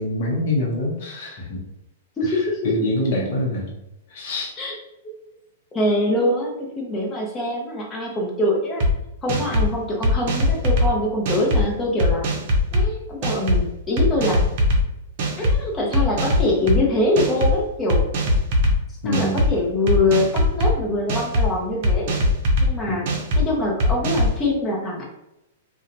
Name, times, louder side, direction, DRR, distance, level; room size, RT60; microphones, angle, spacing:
voice 1, 0.0-1.6 2.3-3.8 4.1-4.5 9.3-9.4 19.0-19.4 22.9-23.0, left 1 dB, 55° left, -2 dB, 0.7 m, -25 dB
voice 2, 2.2-2.6 4.6-4.8 5.7-8.8 9.2-12.3 12.7-14.4 15.4-18.0 19.0-22.1 22.6-25.0, left 1 dB, 20° left, -2 dB, 0.8 m, -23 dB
sound 1, 8.8-8.9 9.3-9.7 10.0-10.9 11.2-11.6 12.0-12.8 13.2-13.6 14.0-14.8 15.2-15.5 15.9-16.8 17.2-17.5 17.9-18.7 19.1-19.5 19.9-20.7 21.1-21.5 21.8-22.7 23.1-23.4 23.8-24.3, left 1 dB, 50° right, 0.6 m, -20 dB
2.7 x 2.2 x 2.5 m, 0.89 s
hypercardioid pair, 135°, 0 cm